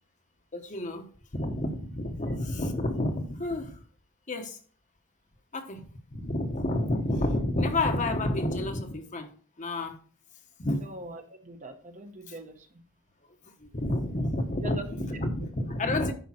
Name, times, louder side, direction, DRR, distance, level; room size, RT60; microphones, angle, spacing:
voice 1, 0.5-1.1 1.3-3.8 4.3-4.6 5.5-5.8 6.1-9.3 9.6-10.0 10.6-10.9 13.4-16.1, left 1 dB, 35° left, 1.1 m, -29 dB
voice 2, 10.8-12.8 14.6-14.9 15.1-15.2, right 2 dB, 35° right, 1.0 m, -42 dB
10.0 x 5.1 x 4.3 m
head